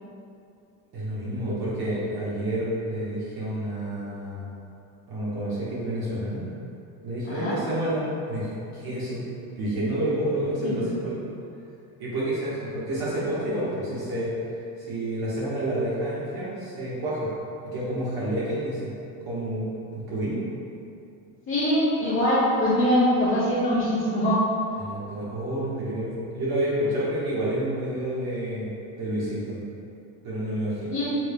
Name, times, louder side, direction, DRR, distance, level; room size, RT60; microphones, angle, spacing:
voice 1, 0.9-4.5 5.1-6.5 7.0-9.3 9.5-11.2 12.0-17.3 17.6-18.9 19.3-20.4 24.8-29.6 30.2-30.9, right 1 dB, 55° right, -9 dB, 1.4 m, -29 dB
voice 2, 7.3-7.6 10.6-10.8 21.5-24.4 30.8-31.1, equal, 25° left, -11 dB, 1.3 m, -23 dB
7.5 x 3.2 x 2.3 m, 2.6 s
supercardioid pair, 110°, 45 cm